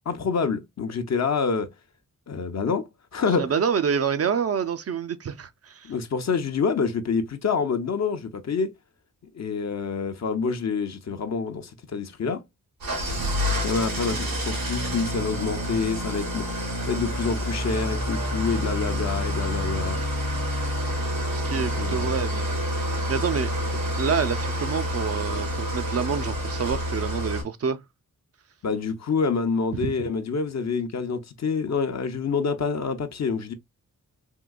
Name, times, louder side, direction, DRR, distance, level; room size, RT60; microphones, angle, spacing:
voice 1, 0.1-1.7 2.3-3.5 5.8-8.7 9.3-12.4 13.6-20.0 21.7-22.2 28.6-33.5, left 5 dB, 50° left, 0.7 m, -27 dB
voice 2, 3.4-5.9 21.3-22.6 23.1-23.5 24.0-27.8 29.8-29.9, right 6 dB, 45° right, 0.4 m, -27 dB
Engine starting / Idling, 12.8-27.4, equal, 90° right, 1.6 m, -28 dB
3.7 x 2.8 x 2.2 m
cardioid pair, 60°, 34 cm